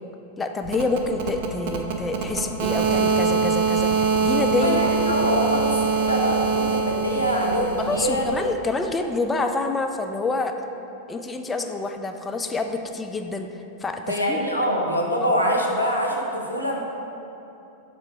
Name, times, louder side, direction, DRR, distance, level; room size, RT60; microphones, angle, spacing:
voice 1, 0.4-4.8 7.8-10.5 11.1-13.5 13.8-14.4 15.2-15.3, left 3 dB, 15° left, 5 dB, 0.4 m, -27 dB
sound 1, 0.6-8.5, right 5 dB, 50° right, 0.6 m, -24 dB
voice 2, 4.5-8.4 14.1-16.8, equal, 90° left, -2 dB, 0.8 m, -24 dB
7.1 x 3.7 x 4.6 m, 2.8 s
figure-of-eight pair, 90°, 0 cm